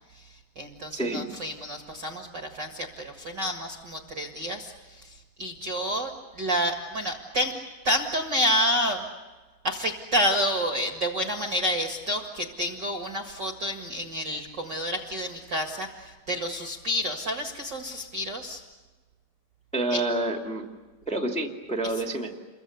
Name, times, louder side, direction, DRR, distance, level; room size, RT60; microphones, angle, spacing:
voice 1, 0.1-7.5 7.8-9.0 9.6-18.6 19.9-20.0 21.8-21.9, equal, 50° right, 3 dB, 1.3 m, -29 dB
voice 2, 0.9-1.3 19.7-20.6 21.0-22.3, right 2 dB, 5° left, 2 dB, 1.0 m, -28 dB
29.5 x 23.5 x 8.1 m, 1.3 s
omnidirectional pair, 5.0 m